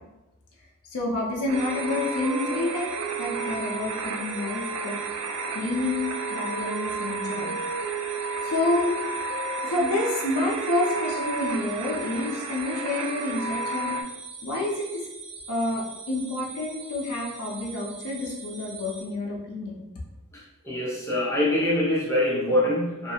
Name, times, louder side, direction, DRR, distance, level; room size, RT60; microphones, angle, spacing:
voice 1, 0.9-4.9 5.5-7.5 8.4-9.0 9.6-14.0 14.4-15.1 15.5-19.8, left 2 dB, 85° left, -3 dB, 0.5 m, -28 dB
sound 1, 1.5-19.0, right 4 dB, 60° right, 1.0 m, -42 dB
sound 2, 1.5-14.0, right 4 dB, 85° right, 0.3 m, -32 dB
voice 2, 20.3-23.1, left 1 dB, 10° left, -6 dB, 0.6 m, -24 dB
2.5 x 2.3 x 2.7 m, 0.99 s
head